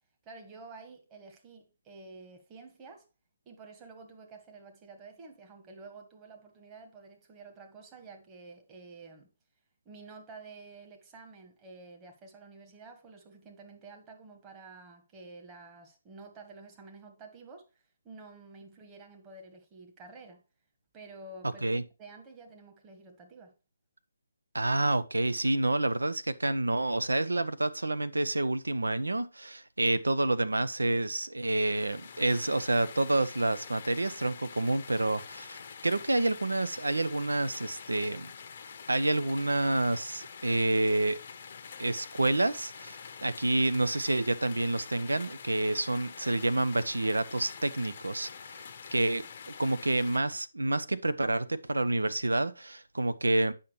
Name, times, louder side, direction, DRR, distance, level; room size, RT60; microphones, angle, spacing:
voice 1, 0.2-3.0 3.4-9.3 9.8-20.4 20.9-21.6 22.0-23.5, right 3 dB, 20° right, 1.3 m, -50 dB
voice 2, 24.5-38.3 38.9-41.2 41.8-48.6 48.9-53.5, right 2 dB, 85° right, 0.6 m, -28 dB
sound 1, 31.4-50.2, left 6 dB, 45° left, 0.8 m, -46 dB
8.4 x 5.8 x 3.0 m
figure-of-eight pair, 145°, 0 cm